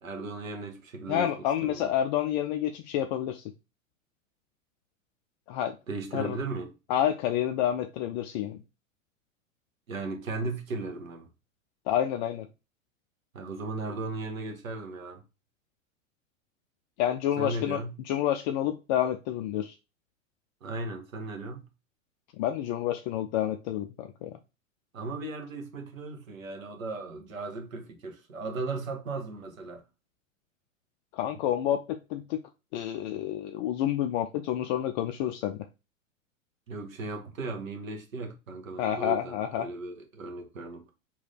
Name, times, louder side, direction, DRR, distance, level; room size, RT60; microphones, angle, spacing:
voice 1, 0.0-1.9 5.9-6.7 9.9-11.3 13.3-15.2 17.4-18.0 20.6-21.7 24.9-29.8 36.7-40.9, right 3 dB, 75° right, 1.2 m, -36 dB
voice 2, 1.1-3.4 5.5-5.8 6.1-6.4 6.9-8.6 11.9-12.5 17.0-17.8 18.1-19.7 22.4-24.3 31.1-32.4 32.7-35.7 38.8-39.7, left 11 dB, 35° left, 0.4 m, -29 dB
3.2 x 3.0 x 3.8 m
figure-of-eight pair, 95°, 40 cm